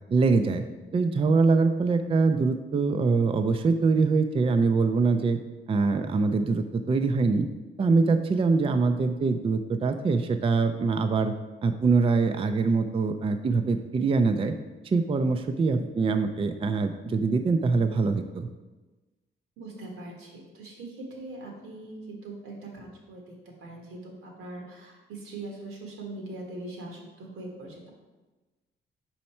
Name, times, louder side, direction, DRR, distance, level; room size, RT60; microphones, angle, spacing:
voice 1, 0.1-0.6 0.9-5.4 5.7-7.5 7.8-11.3 11.6-14.5 14.8-18.5, right 4 dB, 25° right, 7 dB, 0.4 m, -24 dB
voice 2, 19.6-27.9, right 2 dB, 90° right, 0 dB, 1.6 m, -41 dB
5.5 x 4.3 x 4.3 m, 1.2 s
cardioid pair, 95°, 21 cm